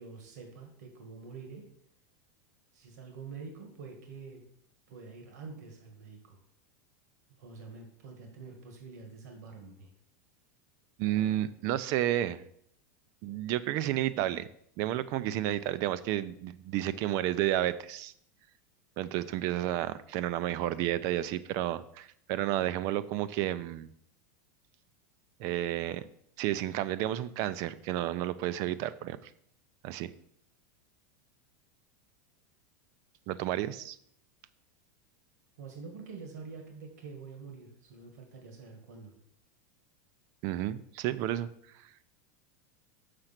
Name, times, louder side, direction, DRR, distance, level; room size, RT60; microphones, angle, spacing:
voice 1, 0.0-1.7 2.7-4.4 4.9-6.4 7.4-9.9 35.6-39.1, right 4 dB, 75° right, 3 dB, 1.9 m, -46 dB
voice 2, 11.0-12.4 13.2-14.5 14.8-18.1 19.0-23.9 25.4-26.1 26.4-29.3 29.8-30.1 33.3-34.0 40.4-41.5, right 13 dB, 35° right, 16 dB, 0.4 m, -31 dB
6.6 x 5.9 x 5.8 m, 0.69 s
supercardioid pair, 170°, 9 cm